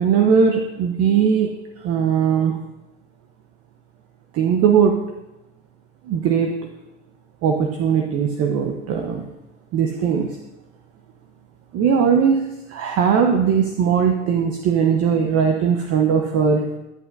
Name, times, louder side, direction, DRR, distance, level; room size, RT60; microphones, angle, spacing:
voice 1, 0.0-1.5 1.8-2.6 4.3-5.0 6.0-6.5 7.4-9.2 9.7-10.4 11.7-16.6, right 7 dB, 40° right, 3 dB, 1.0 m, -19 dB
11.5 x 8.0 x 2.6 m, 0.93 s
hypercardioid pair, 90°, 35 cm